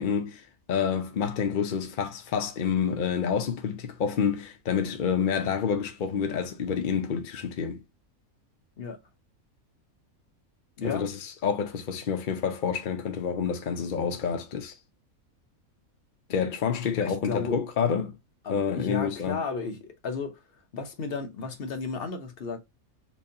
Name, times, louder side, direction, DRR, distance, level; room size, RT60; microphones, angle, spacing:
voice 1, 0.0-7.8 10.8-14.8 16.3-18.1 18.5-19.4, left 7 dB, 65° left, 0.5 m, -28 dB
voice 2, 10.8-11.1 17.0-17.6 18.4-20.4 20.7-22.6, left 4 dB, 50° left, 0.9 m, -33 dB
4.4 x 2.6 x 2.7 m
omnidirectional pair, 1.5 m